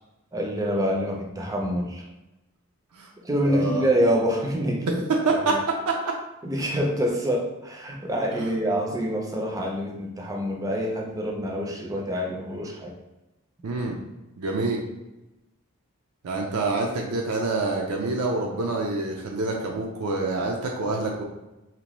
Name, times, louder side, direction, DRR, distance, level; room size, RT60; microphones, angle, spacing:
voice 1, 0.3-2.1 3.2-5.0 5.3-5.6 6.4-12.9, equal, 15° right, 0 dB, 0.3 m, -26 dB
voice 2, 3.4-3.8 4.9-5.6 5.9-6.1 8.3-8.5 13.6-14.0 14.4-14.8 16.2-21.2, right 3 dB, 85° right, 0 dB, 0.4 m, -26 dB
2.8 x 2.1 x 3.0 m, 0.99 s
head